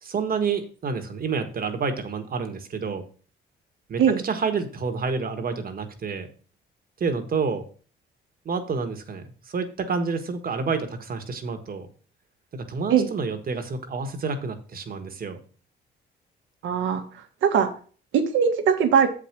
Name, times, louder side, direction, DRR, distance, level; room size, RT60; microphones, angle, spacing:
voice 1, 0.0-3.0 3.9-6.3 7.0-7.6 8.4-11.9 12.5-15.4, right 5 dB, 45° right, 6 dB, 1.6 m, -29 dB
voice 2, 16.6-17.7 18.1-19.1, right 7 dB, 80° right, 5 dB, 1.5 m, -21 dB
7.6 x 5.1 x 6.0 m, 0.41 s
cardioid pair, 90°, 20 cm